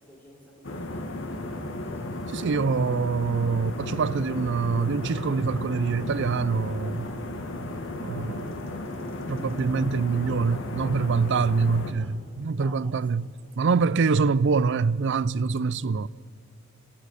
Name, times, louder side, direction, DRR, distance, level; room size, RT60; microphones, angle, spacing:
voice 1, 0.0-1.7 10.5-10.6 11.9-12.1 12.6-13.8, equal, 10° left, 4.0 m, -52 dB
sound 1, 0.6-11.9, left 1 dB, 65° left, 1.8 m, -34 dB
voice 2, 2.3-7.1 8.0-8.5 9.3-13.3 13.6-16.1, right 4 dB, 60° right, 0.5 m, -25 dB
sound 2, 5.8-12.0, left 1 dB, 30° left, 7.4 m, -51 dB
27.0 x 16.5 x 6.5 m
head